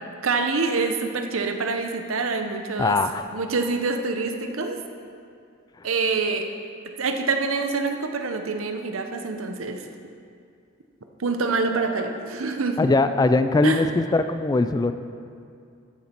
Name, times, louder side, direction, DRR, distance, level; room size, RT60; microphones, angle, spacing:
voice 1, 0.2-3.0 3.3-4.8 5.8-6.5 7.0-9.8 11.2-12.8 13.6-13.8, right 4 dB, 85° right, 5 dB, 0.8 m, -26 dB
voice 2, 2.8-3.3 5.8-5.9 12.8-14.9, left 2 dB, 20° left, 10 dB, 0.3 m, -21 dB
13.5 x 7.1 x 4.4 m, 2.4 s
head